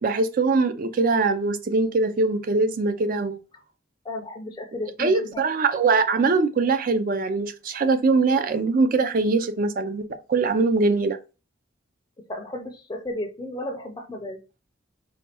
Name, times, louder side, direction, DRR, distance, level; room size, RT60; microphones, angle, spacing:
voice 1, 0.0-3.4 5.0-11.2, right 3 dB, 45° right, 0.4 m, -22 dB
voice 2, 4.1-5.3 12.3-14.4, left 1 dB, 20° left, 0.4 m, -33 dB
4.1 x 2.2 x 2.8 m
head